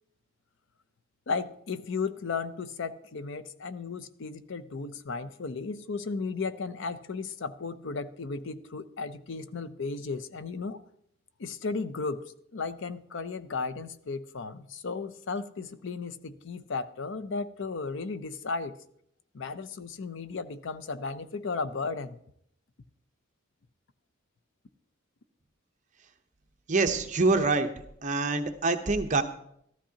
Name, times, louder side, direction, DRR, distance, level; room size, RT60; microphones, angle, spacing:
voice 1, 1.3-10.8 11.4-12.2 12.5-18.7 19.3-22.2, left 4 dB, 60° left, 13 dB, 0.6 m, -35 dB
voice 2, 26.7-27.7 28.0-29.2, right 3 dB, 35° right, 7 dB, 0.8 m, -25 dB
14.0 x 13.0 x 2.9 m, 0.71 s
head